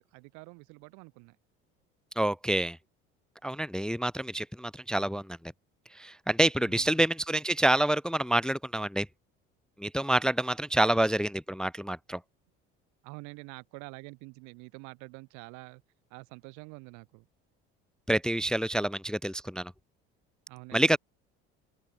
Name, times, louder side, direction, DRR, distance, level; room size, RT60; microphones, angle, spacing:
voice 1, 0.0-1.4 6.6-7.1 10.6-10.9 13.0-15.8 16.1-17.3 20.5-21.0, right 29 dB, 80° right, 1.9 m, -47 dB
voice 2, 2.2-2.8 3.4-5.4 6.0-9.1 9.8-12.2 18.1-19.7 20.7-21.0, right 1 dB, 5° left, 0.5 m, -27 dB
open air
supercardioid pair, 80°, 29 cm